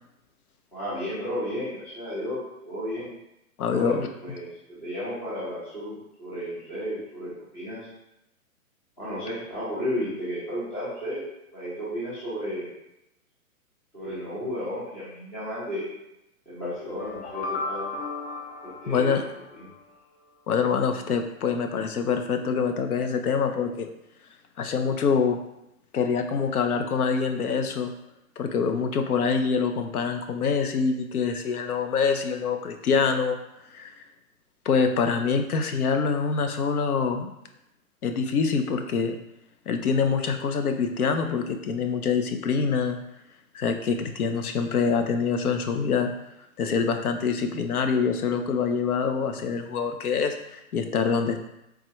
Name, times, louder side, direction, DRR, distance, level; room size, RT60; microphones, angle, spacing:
voice 1, 0.7-3.1 3.7-3.9 4.2-7.8 9.0-11.2 11.5-12.7 13.9-15.9 16.5-17.8 18.6-19.2 19.5-19.7, equal, 5° left, -11 dB, 0.4 m, -33 dB
voice 2, 3.6-4.1 18.9-19.2 20.5-23.9 24.6-25.4 25.9-27.9 28.4-33.4 33.7-33.9 34.6-37.3 38.0-39.2 39.7-43.0 43.5-46.1 46.6-51.4, left 5 dB, 80° left, 7 dB, 0.7 m, -25 dB
sound 1, 16.7-19.8, left 3 dB, 45° left, 0.8 m, -35 dB
3.6 x 3.1 x 3.0 m, 0.86 s
hypercardioid pair, 135°, 44 cm